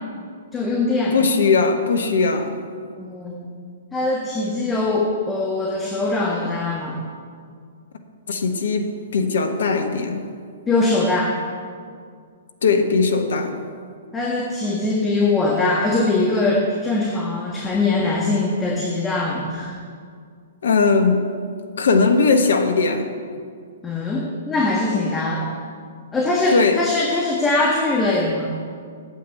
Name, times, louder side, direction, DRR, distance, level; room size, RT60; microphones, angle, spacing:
voice 1, 0.5-1.2 3.0-3.5 3.9-7.0 10.7-11.3 14.1-19.7 23.8-25.5 26.1-28.5, left 2 dB, 10° left, -3 dB, 1.5 m, -22 dB
voice 2, 1.1-2.5 8.3-10.2 12.6-13.6 20.6-21.3 21.8-23.1 26.5-26.8, left 4 dB, 60° left, 6 dB, 1.3 m, -19 dB
9.6 x 7.9 x 7.9 m, 2.1 s
figure-of-eight pair, 115°, 0 cm